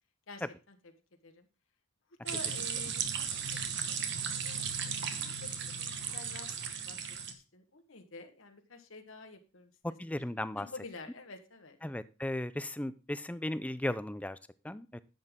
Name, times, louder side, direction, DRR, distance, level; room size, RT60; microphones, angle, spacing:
voice 1, 0.3-0.8 1.2-1.5 2.2-7.0 7.3-9.7 10.5-11.8, left 3 dB, 70° left, 5 dB, 1.4 m, -49 dB
sound 1, 2.3-7.3, right 7 dB, 55° right, 1.2 m, -36 dB
voice 2, 9.8-10.7 11.8-14.4 14.6-15.0, left 1 dB, 5° left, 15 dB, 0.4 m, -36 dB
10.5 x 7.9 x 3.7 m, 0.32 s
head